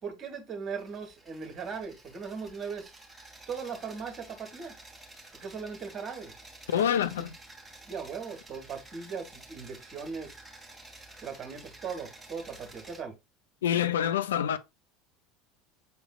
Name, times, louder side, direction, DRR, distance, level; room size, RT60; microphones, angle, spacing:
voice 1, 0.0-2.9 3.5-4.7 5.3-6.3 7.0-7.1 7.9-10.3 11.2-13.1, right 5 dB, 35° right, 1.4 m, -38 dB
sound 1, 0.8-13.0, right 2 dB, 5° right, 1.3 m, -51 dB
voice 2, 6.7-7.4 13.6-14.6, left 9 dB, 70° left, 0.4 m, -26 dB
7.4 x 3.1 x 2.2 m
figure-of-eight pair, 70°, 0 cm